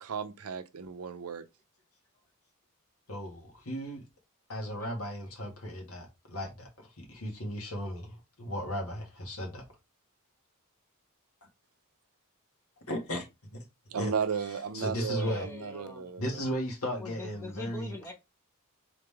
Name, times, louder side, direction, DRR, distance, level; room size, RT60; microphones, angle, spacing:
voice 1, 0.0-1.4 13.9-16.2, right 6 dB, 75° right, 0.6 m, -34 dB
voice 2, 3.1-4.0 4.5-9.6 12.9-13.3 13.5-13.6 14.0-14.1 14.5-15.5 16.2-17.9, equal, 75° left, 1.8 m, -36 dB
voice 3, 15.1-16.1 17.0-18.1, left 1 dB, 10° left, 1.2 m, -44 dB
3.8 x 3.6 x 3.4 m
head